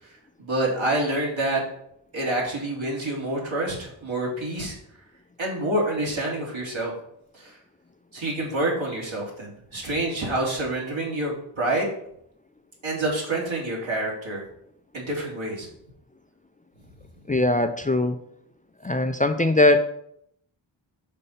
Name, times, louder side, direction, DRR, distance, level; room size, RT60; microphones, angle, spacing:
voice 1, 0.4-1.6 2.1-4.8 5.4-6.9 7.3-7.5 8.1-11.3 11.6-11.9 12.8-14.4 14.9-15.7, right 1 dB, 70° right, -3 dB, 2.5 m, -27 dB
voice 2, 17.3-18.2 18.8-19.9, left 2 dB, 15° left, 7 dB, 0.5 m, -21 dB
5.4 x 3.9 x 5.6 m, 0.70 s
cardioid pair, 45°, 48 cm